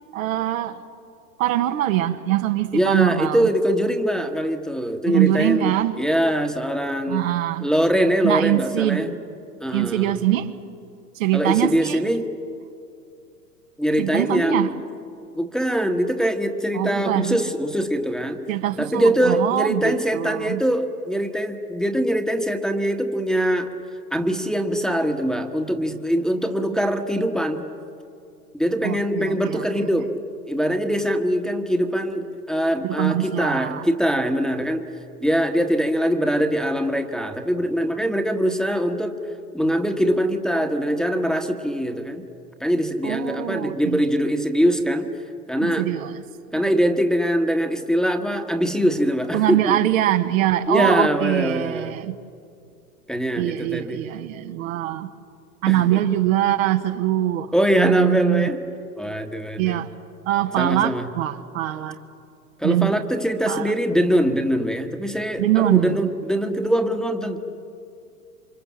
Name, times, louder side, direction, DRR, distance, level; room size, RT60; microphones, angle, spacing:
voice 1, 0.1-0.8 1.4-3.5 5.1-6.0 7.1-7.7 8.2-9.1 9.7-10.5 11.2-12.0 14.0-14.7 16.7-17.4 18.5-20.6 28.8-29.9 32.8-33.9 43.0-44.0 45.6-46.2 46.5-46.6 49.3-52.2 53.3-55.1 55.6-58.5 59.6-59.9 60.2-62.0 62.6-63.0 63.5-63.7 65.4-66.1, right 13 dB, 60° right, 1.5 m, -23 dB
voice 2, 2.7-7.2 7.6-9.2 9.6-10.2 11.3-12.3 13.8-14.7 15.3-18.4 18.8-23.7 24.1-27.7 28.5-30.1 30.5-34.8 35.2-39.1 39.5-42.2 42.6-45.1 45.5-45.9 46.5-49.8 50.7-51.9 53.1-54.0 55.7-56.0 57.5-58.6 59.0-59.8 60.6-61.1 62.6-67.4, equal, ahead, 1.4 m, -22 dB
28.0 x 25.0 x 7.4 m
hypercardioid pair, 105°, 46 cm